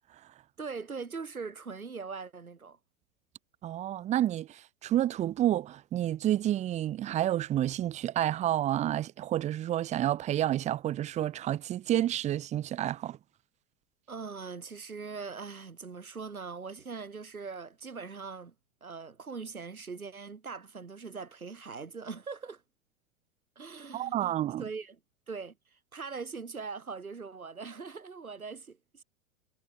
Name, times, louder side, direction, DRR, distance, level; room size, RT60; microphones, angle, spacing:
voice 1, 0.6-2.8 14.1-18.5 18.8-22.6 23.6-25.0 25.3-29.0, right 5 dB, 85° right, 2.0 m, -41 dB
voice 2, 3.6-13.2 23.9-24.6, right 12 dB, 15° right, 0.6 m, -29 dB
figure-of-eight pair, 90°, 42 cm